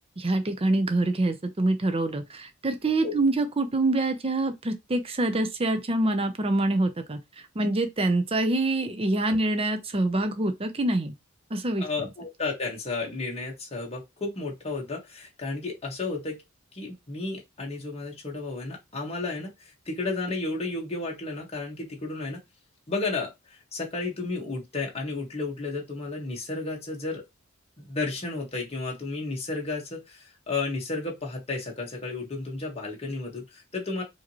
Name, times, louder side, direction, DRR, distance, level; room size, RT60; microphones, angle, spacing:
voice 1, 0.2-11.1 11.5-12.1, right 2 dB, 25° right, 0.6 m, -26 dB
voice 2, 11.8-16.4 16.7-22.4 22.9-27.3 27.8-34.0, left 3 dB, 30° left, 1.5 m, -33 dB
4.9 x 2.9 x 3.0 m
head